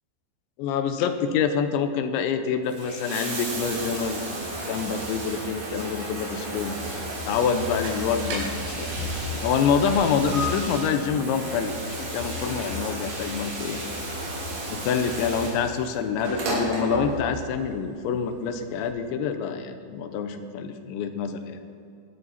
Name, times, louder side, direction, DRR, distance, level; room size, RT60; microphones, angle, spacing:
voice 1, 0.6-4.3 4.7-6.8 7.3-8.9 9.4-13.8 14.7-21.6, left 6 dB, 80° left, 8 dB, 3.1 m, -26 dB
Bathtub (filling or washing), 2.6-17.6 18.7-18.8, right 1 dB, 50° right, 4.2 m, -32 dB
sound 1, 7.5-18.9, left 1 dB, 85° right, 6.0 m, -41 dB
18.0 x 12.5 x 4.2 m, 2.5 s
omnidirectional pair, 5.4 m